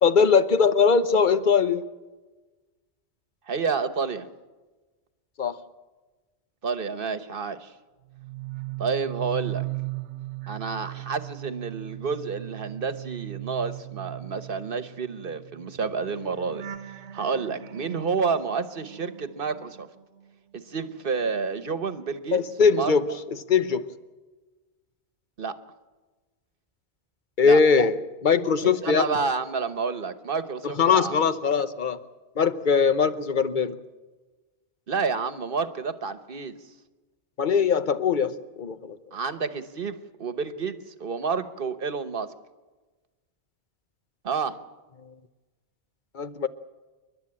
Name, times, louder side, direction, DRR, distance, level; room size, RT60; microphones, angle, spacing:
voice 1, 0.0-1.8 5.4-5.6 22.3-23.9 27.4-29.2 30.6-32.0 32.4-33.8 37.4-39.0 46.1-46.5, left 5 dB, 45° left, 1.0 m, -21 dB
voice 2, 3.5-4.3 6.6-7.7 8.8-9.7 10.5-16.7 17.1-19.9 20.5-22.4 22.7-22.9 25.4-25.5 27.4-27.6 28.8-31.2 34.9-36.5 39.1-42.3 44.2-44.6, right 5 dB, 55° right, 1.2 m, -29 dB
sound 1, 8.1-20.4 20.7-22.7 23.0-23.4, right 17 dB, 80° right, 1.2 m, -39 dB
29.0 x 11.5 x 8.6 m
omnidirectional pair, 1.2 m